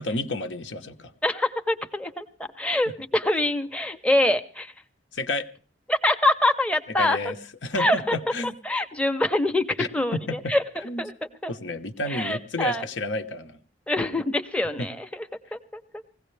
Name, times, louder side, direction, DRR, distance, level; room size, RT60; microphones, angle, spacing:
voice 1, 0.0-1.1 5.1-5.5 7.0-7.4 7.6-8.6 9.8-10.5 10.8-11.0 11.5-13.6 14.8-14.9, left 2 dB, 90° left, 6 dB, 1.1 m, -30 dB
voice 2, 1.2-2.3 2.6-4.7 5.9-7.2 7.8-8.2 8.4-10.6 11.0-11.1 11.4-11.5 12.0-12.9 13.9-15.1 15.5-16.0, left 1 dB, 5° left, 7 dB, 0.7 m, -25 dB
20.0 x 16.5 x 3.3 m, 0.39 s
head